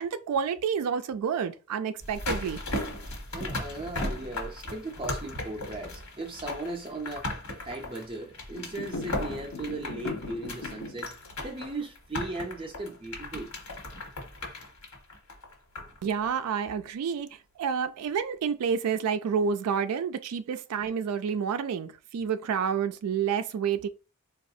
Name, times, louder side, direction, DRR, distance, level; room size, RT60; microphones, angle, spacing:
voice 1, 0.0-2.6 16.0-23.9, right 7 dB, 90° right, 0.3 m, -29 dB
sound 1, 2.0-16.0 16.3-16.4, left 1 dB, 75° left, 1.2 m, -37 dB
voice 2, 3.3-7.3 7.6-11.1 11.4-13.5 15.8-16.0, right 2 dB, 25° right, 0.4 m, -37 dB
sound 2, 8.5-11.1, left 3 dB, 60° left, 0.5 m, -39 dB
4.0 x 2.3 x 2.6 m
head